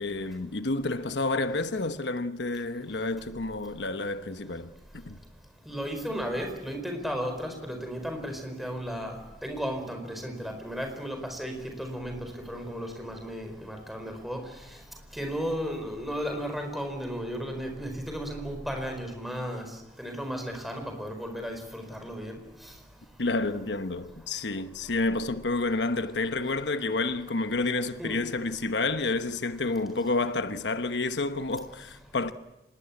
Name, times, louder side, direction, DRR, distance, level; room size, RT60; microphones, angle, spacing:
voice 1, 0.0-5.2 23.2-32.3, left 3 dB, 85° left, 1.1 m, -29 dB
voice 2, 5.7-9.1 9.4-12.1 12.5-14.4 15.2-19.6 20.0-22.4 28.0-28.2, equal, ahead, 4.6 m, -34 dB
26.0 x 20.5 x 8.4 m
head